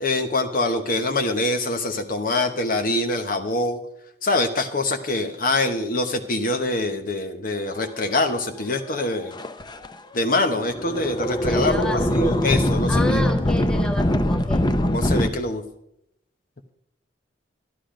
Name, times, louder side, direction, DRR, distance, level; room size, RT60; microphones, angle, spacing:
voice 1, 0.0-3.8 4.2-9.4 10.1-13.2 14.8-15.6, left 2 dB, 50° left, 6 dB, 1.0 m, -24 dB
sound 1, 9.0-9.1 9.3-9.9 10.5-15.3, left 1 dB, 25° left, 0.7 m, -22 dB
voice 2, 11.4-12.1 12.9-14.7, left 2 dB, 5° left, 3 dB, 1.4 m, -30 dB
12.5 x 12.0 x 5.1 m, 0.79 s
head